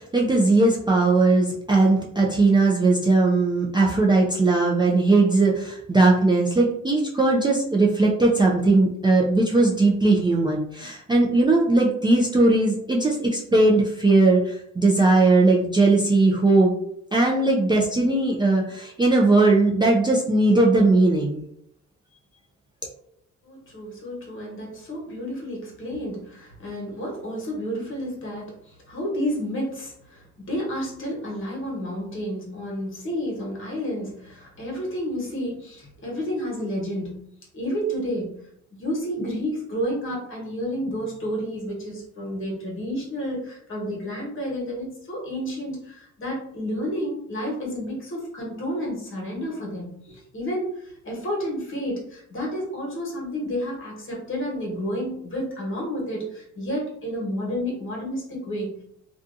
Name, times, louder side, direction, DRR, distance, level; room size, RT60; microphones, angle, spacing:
voice 1, 0.0-16.8 17.1-21.4, right 2 dB, 15° right, -3 dB, 0.4 m, -19 dB
voice 2, 23.4-37.3 37.5-38.4 38.7-58.8, equal, 45° left, -3 dB, 1.2 m, -30 dB
2.6 x 2.4 x 2.5 m, 0.72 s
cardioid pair, 90°, 30 cm